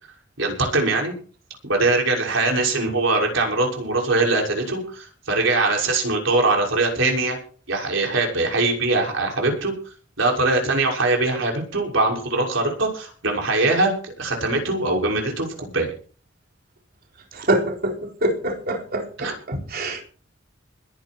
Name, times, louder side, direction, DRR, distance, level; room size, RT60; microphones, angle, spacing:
voice 1, 0.4-1.1 1.6-7.4 7.7-9.7 10.2-15.9 19.2-19.3, right 2 dB, 70° right, 1 dB, 6.2 m, -22 dB
voice 2, 17.5-17.9 18.2-19.3 19.7-20.0, right 1 dB, 50° right, 2 dB, 4.1 m, -24 dB
21.0 x 11.0 x 4.6 m, 0.41 s
head